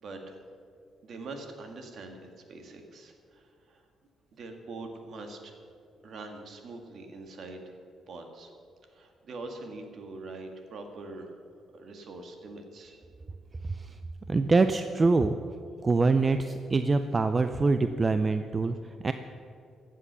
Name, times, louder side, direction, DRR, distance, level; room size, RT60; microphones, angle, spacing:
voice 1, 0.0-0.4 1.0-3.9 4.3-5.6 6.0-7.8 8.1-8.5 8.9-11.4 11.7-13.0, right 3 dB, 60° right, 4 dB, 1.8 m, -43 dB
voice 2, 13.6-14.0 14.3-15.4 15.8-19.1, right 3 dB, 30° right, 9 dB, 0.5 m, -25 dB
14.5 x 7.6 x 6.8 m, 2.3 s
cardioid pair, 90°, 0 cm